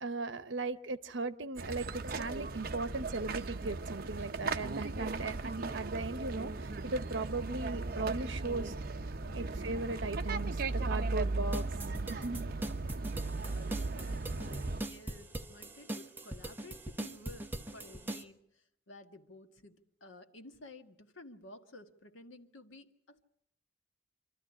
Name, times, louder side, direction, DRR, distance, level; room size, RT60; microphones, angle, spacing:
voice 1, 0.0-8.7 9.3-11.7 12.1-12.5, right 3 dB, 75° right, 0.9 m, -38 dB
sound 1, 1.6-14.8, right 3 dB, 50° right, 0.8 m, -37 dB
sound 2, 11.5-18.2, right 1 dB, 10° right, 1.0 m, -41 dB
voice 2, 13.4-23.3, left 2 dB, 85° left, 1.6 m, -54 dB
26.0 x 13.0 x 9.9 m
head